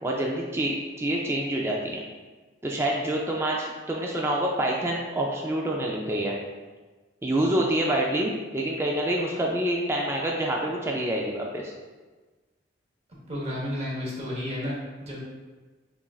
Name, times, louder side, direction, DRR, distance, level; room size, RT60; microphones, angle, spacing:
voice 1, 0.0-2.0 2.6-6.3 7.2-11.7, right 1 dB, 15° right, -2 dB, 0.3 m, -27 dB
voice 2, 13.3-15.2, left 1 dB, 30° right, -6 dB, 1.0 m, -32 dB
6.9 x 2.5 x 2.3 m, 1.3 s
head